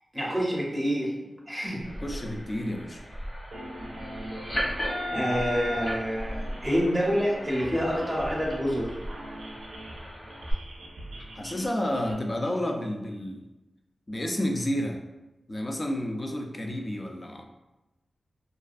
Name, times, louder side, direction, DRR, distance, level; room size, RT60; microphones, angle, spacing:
voice 1, 0.1-1.1 1.5-1.8 5.1-8.9, equal, 5° right, -4 dB, 0.6 m, -27 dB
sound 1, 1.8-10.5, equal, 50° left, 1.0 m, -36 dB
voice 2, 2.0-3.0 11.2-13.4 14.1-15.0 15.5-17.4, left 1 dB, 30° left, 3 dB, 0.3 m, -30 dB
sound 2, 3.5-12.1, right 1 dB, 80° right, 0.4 m, -42 dB
2.4 x 2.3 x 2.3 m, 1.0 s
wide cardioid pair, 95°, 0 cm